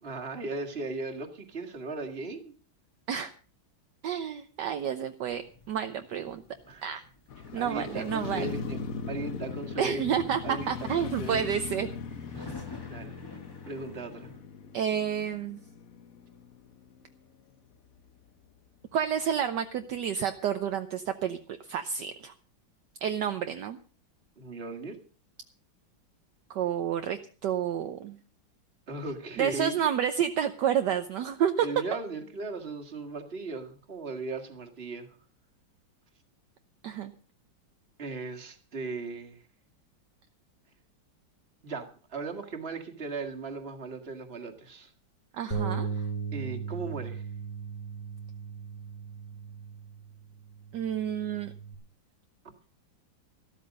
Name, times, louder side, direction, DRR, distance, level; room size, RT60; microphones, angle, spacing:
voice 1, 0.0-2.5 6.7-6.9 7.6-8.8 9.1-10.2 10.4-11.5 12.4-12.5 12.9-13.2 13.7-14.3 24.4-25.0 28.9-29.8 31.6-35.1 38.0-39.4 41.6-44.9 46.3-47.3, right 3 dB, 30° right, 4 dB, 2.0 m, -37 dB
voice 2, 4.0-6.4 6.8-7.0 7.5-8.5 9.8-12.3 12.5-12.6 14.7-15.6 18.9-21.4 21.6-22.3 23.0-23.8 26.5-28.2 29.4-32.0 36.8-37.1 45.3-46.1 50.7-51.5, right 8 dB, 65° right, 8 dB, 1.3 m, -30 dB
sound 1, 5.3-14.4, left 2 dB, 15° left, 1.4 m, -51 dB
Motorcycle, 7.3-17.4 17.7-17.8, left 6 dB, 50° left, 1.2 m, -39 dB
Bass guitar, 45.5-51.8, right 5 dB, 30° left, 3.0 m, -37 dB
13.0 x 13.0 x 5.2 m, 0.38 s
omnidirectional pair, 2.1 m